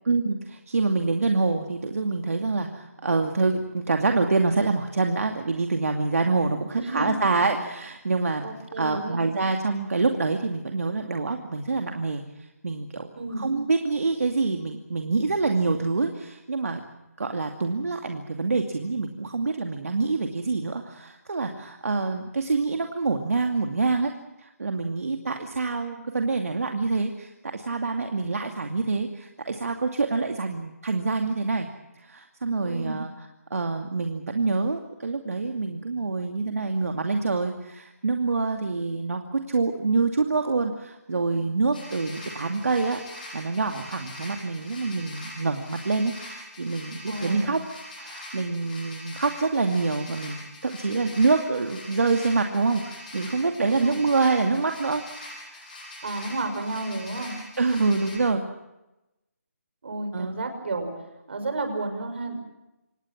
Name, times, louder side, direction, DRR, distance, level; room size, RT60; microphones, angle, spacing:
voice 1, 0.0-8.5 8.8-13.1 13.4-16.8 17.2-24.1 24.4-31.7 32.0-47.6 48.0-55.0 55.4-55.7 57.6-58.4 60.1-60.3, right 3 dB, 65° right, 4 dB, 2.5 m, -26 dB
voice 2, 6.8-7.1 8.4-9.2 13.2-13.5 32.6-33.0 47.1-47.5 53.6-54.0 56.0-57.3 59.8-60.9 61.3-62.4, right 2 dB, 45° right, 6 dB, 5.9 m, -31 dB
sound 1, 41.7-58.2, left 1 dB, 30° left, 7.2 m, -43 dB
26.5 x 19.0 x 7.4 m, 0.94 s
hypercardioid pair, 175°, 9 cm